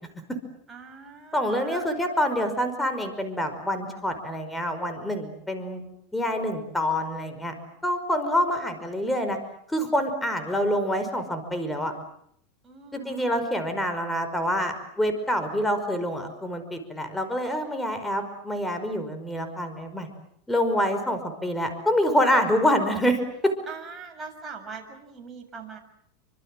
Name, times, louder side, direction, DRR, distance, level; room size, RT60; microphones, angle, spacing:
voice 1, 0.7-1.9 12.6-13.3 23.7-25.8, right 5 dB, 20° right, 2 dB, 7.2 m, -41 dB
voice 2, 1.3-5.8 6.1-7.5 7.8-9.4 9.7-11.9 12.9-20.1 20.5-23.5, equal, 5° left, 7 dB, 5.3 m, -26 dB
28.5 x 25.5 x 7.7 m, 0.71 s
supercardioid pair, 120°, 0 cm